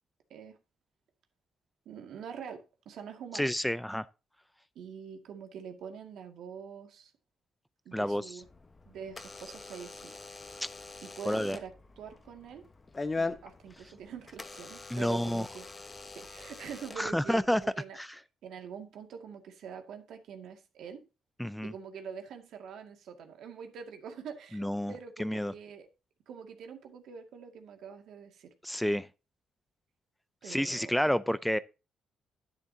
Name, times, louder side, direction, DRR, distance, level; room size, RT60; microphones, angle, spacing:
voice 1, 1.9-3.5 4.8-7.1 7.9-8.5 8.9-10.5 11.0-12.7 13.2-15.7 16.1-18.0 18.4-21.0 21.6-25.9 26.3-28.5 30.4-30.9, right 7 dB, 75° right, 2.1 m, -45 dB
voice 2, 3.3-4.1 7.9-8.4 10.6-10.7 11.3-11.6 14.9-15.5 17.0-17.6 17.9-18.1 21.4-21.7 24.5-24.9 25.2-25.5 28.6-29.1 30.4-31.6, equal, 5° left, 0.5 m, -29 dB
Door / Alarm, 8.4-17.6, left 3 dB, 25° left, 1.2 m, -42 dB
10.5 x 10.0 x 2.8 m
cardioid pair, 90°, 0 cm